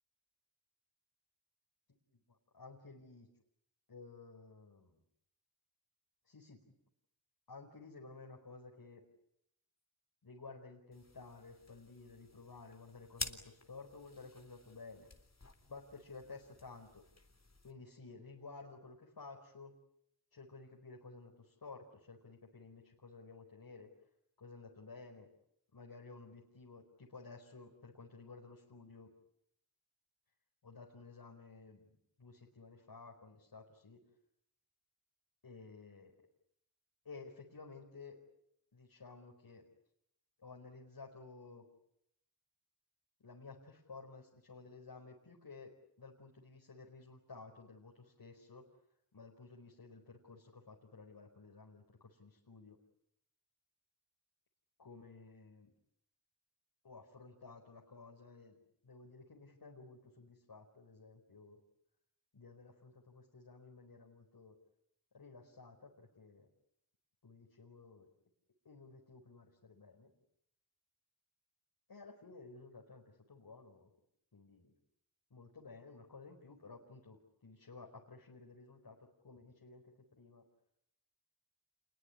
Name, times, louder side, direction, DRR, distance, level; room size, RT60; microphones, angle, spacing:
voice 1, 2.1-3.3 3.9-5.0 6.2-6.7 7.5-9.1 10.2-15.1 15.7-17.0 17.6-19.7 20.3-23.9 24.4-25.3 25.7-29.1 30.6-34.0 35.4-36.1 37.0-38.2 38.7-39.6 40.4-41.7 43.2-48.8 49.1-52.8 54.8-55.7 56.8-58.6 58.8-61.6 62.3-64.6 65.1-66.5 67.2-68.1 68.6-70.1 71.9-73.9 74.3-74.7 75.3-80.5, left 3 dB, 60° left, 0 dB, 4.8 m, -54 dB
sound 1, 10.9-17.7, left 3 dB, 40° left, 3.7 m, -50 dB
27.5 x 21.5 x 9.7 m, 0.77 s
cardioid pair, 50°, 41 cm